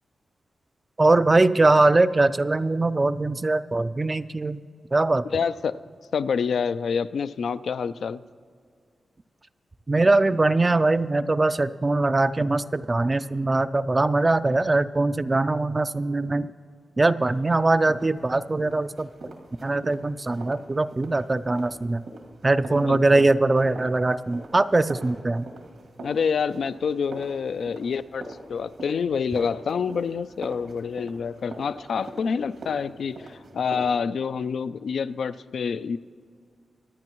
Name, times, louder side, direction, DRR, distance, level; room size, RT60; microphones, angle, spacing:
voice 1, 1.0-4.6 4.9-5.4 9.9-16.5 17.0-19.3 19.6-22.0 22.4-25.5, right 2 dB, 30° right, 13 dB, 0.3 m, -22 dB
voice 2, 5.2-5.7 6.1-8.2 22.8-23.2 26.0-28.2 28.5-36.0, left 6 dB, 75° left, 13 dB, 0.3 m, -27 dB
sound 1, 17.2-33.9, right 2 dB, 90° right, 2.1 m, -44 dB
24.5 x 9.7 x 3.0 m, 2.2 s
cardioid pair, 75°, 0 cm